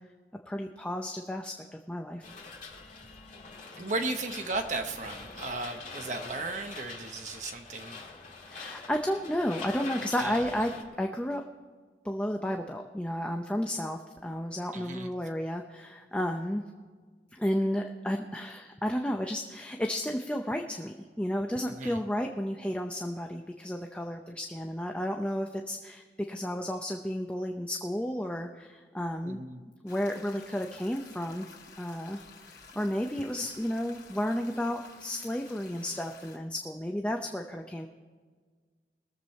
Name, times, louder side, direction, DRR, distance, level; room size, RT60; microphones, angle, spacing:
voice 1, 0.5-1.6 1.9-2.2 5.4-5.7 8.5-10.7 11.0-11.4 12.0-16.6 17.3-29.4 29.8-31.5 31.8-37.9, equal, 5° left, 3 dB, 0.6 m, -32 dB
sound 1, 2.2-10.8, left 4 dB, 45° left, 2.0 m, -44 dB
voice 2, 3.8-8.0 10.2-10.5 14.7-15.1 21.7-22.0 29.2-29.6, right 3 dB, 45° right, 6 dB, 0.9 m, -35 dB
sound 2, 29.9-36.4, left 5 dB, 65° left, 3.0 m, -52 dB
21.5 x 7.4 x 4.2 m, 1.6 s
head